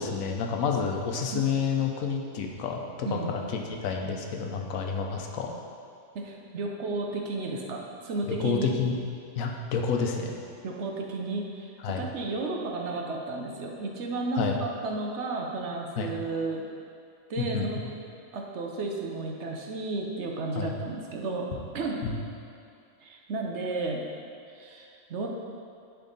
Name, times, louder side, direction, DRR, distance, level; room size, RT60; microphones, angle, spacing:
voice 1, 0.0-5.5 8.3-9.0 9.4-10.3 11.8-12.0 14.4-14.6 16.0-16.1 17.4-17.7 20.6-20.7 22.0-22.2, left 5 dB, 85° left, 2 dB, 1.1 m, -29 dB
voice 2, 6.1-8.7 10.6-16.6 17.3-17.8 18.3-22.0 23.0-24.1 24.5-25.3, right 3 dB, 65° right, 0 dB, 1.0 m, -33 dB
10.5 x 3.6 x 4.0 m, 2.4 s
omnidirectional pair, 1.4 m